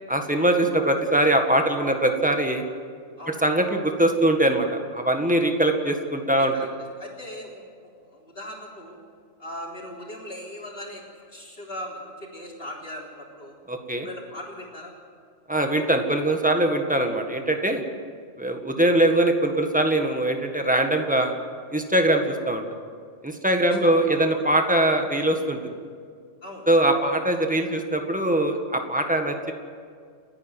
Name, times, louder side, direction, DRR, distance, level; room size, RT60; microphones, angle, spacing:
voice 1, 0.1-2.6 3.3-4.7 4.9-6.5 13.7-14.1 15.5-17.8 18.4-21.3 21.7-22.7 23.2-25.7 26.7-29.5, right 1 dB, 5° right, 4 dB, 1.7 m, -22 dB
voice 2, 6.4-6.7 7.0-9.0 9.4-13.6 14.0-14.9 23.8-24.5 26.4-26.7, left 1 dB, 45° left, -2 dB, 3.9 m, -39 dB
29.5 x 9.9 x 9.4 m, 2.1 s
omnidirectional pair, 1.4 m